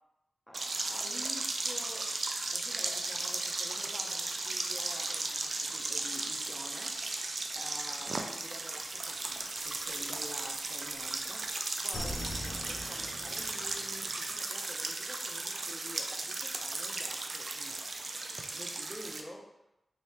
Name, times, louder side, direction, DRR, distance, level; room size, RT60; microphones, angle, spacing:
voice 1, 0.5-2.1 2.5-17.8 18.5-19.5, equal, 5° left, 0 dB, 0.6 m, -49 dB
sound 1, 0.5-19.2, right 3 dB, 65° right, 0.4 m, -36 dB
sound 2, 8.8-10.5 10.9-14.3, left 1 dB, 75° left, 0.5 m, -43 dB
3.1 x 3.1 x 2.9 m, 0.91 s
cardioid pair, 45°, 0 cm